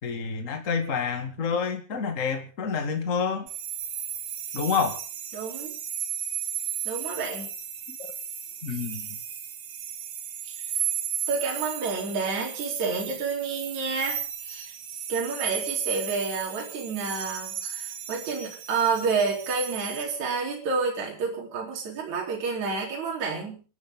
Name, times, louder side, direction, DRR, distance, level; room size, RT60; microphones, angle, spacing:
voice 1, 0.0-3.5 4.5-5.0 8.0-8.1 8.6-9.1, left 5 dB, 70° left, 5 dB, 0.7 m, -28 dB
sound 1, 3.5-20.0, right 9 dB, 60° right, 3.9 m, -35 dB
voice 2, 5.3-5.7 6.8-7.5 10.4-10.6 11.3-14.7 15.1-23.6, right 4 dB, 40° right, -2 dB, 5.1 m, -29 dB
29.0 x 12.0 x 3.8 m, 0.37 s
omnidirectional pair, 5.5 m